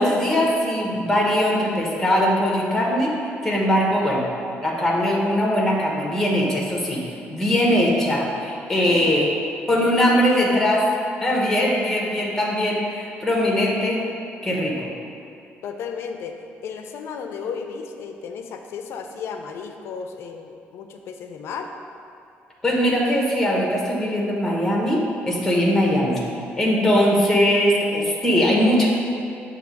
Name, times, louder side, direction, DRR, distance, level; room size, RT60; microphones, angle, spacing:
voice 1, 0.0-3.1 3.4-4.3 4.6-7.0 7.3-9.3 9.7-10.9 11.2-14.1 14.4-14.9 22.6-26.2 26.6-28.9, equal, 10° left, -2 dB, 1.0 m, -20 dB
voice 2, 8.9-9.2 15.6-16.4 16.6-21.7, left 6 dB, 70° left, 5 dB, 0.4 m, -34 dB
6.8 x 2.8 x 5.2 m, 2.7 s
cardioid pair, 130°, 4 cm